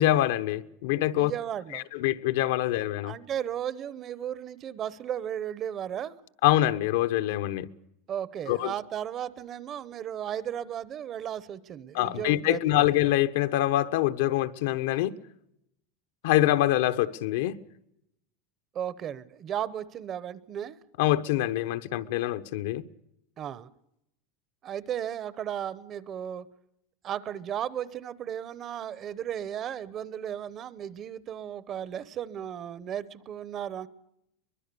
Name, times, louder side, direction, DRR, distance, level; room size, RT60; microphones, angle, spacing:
voice 1, 0.0-1.3 1.7-3.1 6.4-7.7 8.5-8.7 11.9-15.1 16.2-17.5 21.0-22.8, left 14 dB, 65° left, 1.1 m, -25 dB
voice 2, 1.2-1.9 3.0-6.1 8.1-12.9 18.7-20.8 23.4-23.7 24.6-26.5 27.0-33.9, right 10 dB, 25° right, 0.8 m, -35 dB
23.5 x 22.0 x 6.8 m
supercardioid pair, 180°, 0 cm